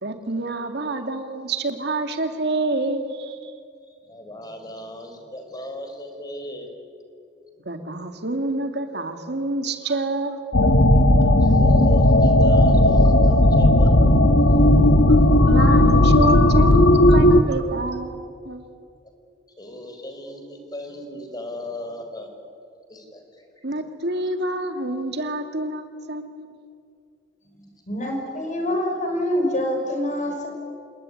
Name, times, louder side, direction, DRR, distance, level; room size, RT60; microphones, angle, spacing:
voice 1, 0.0-3.5 7.6-10.4 15.1-15.2 15.4-18.7 23.6-26.6, right 2 dB, 65° right, 7 dB, 2.5 m, -27 dB
voice 2, 4.1-6.7 11.2-14.0 19.6-22.3 22.9-23.5, left 1 dB, 20° left, 4 dB, 4.6 m, -37 dB
sound 1, 10.5-17.4, left 1 dB, 75° left, 1.4 m, -15 dB
voice 3, 27.9-30.5, left 1 dB, 40° left, 3 dB, 6.2 m, -25 dB
27.5 x 20.5 x 9.9 m, 2.4 s
head